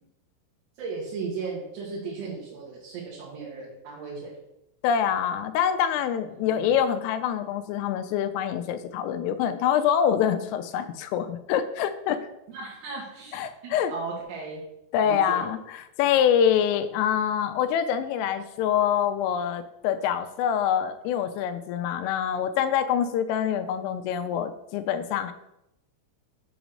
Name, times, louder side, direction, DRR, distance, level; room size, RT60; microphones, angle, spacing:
voice 1, 0.8-4.3 6.3-6.8 12.5-14.6 15.0-15.4, right 4 dB, 65° right, -6 dB, 3.1 m, -36 dB
voice 2, 4.8-12.3 13.3-13.9 14.9-25.3, left 9 dB, 85° left, 9 dB, 3.0 m, -25 dB
8.7 x 3.0 x 6.2 m, 0.86 s
omnidirectional pair, 6.0 m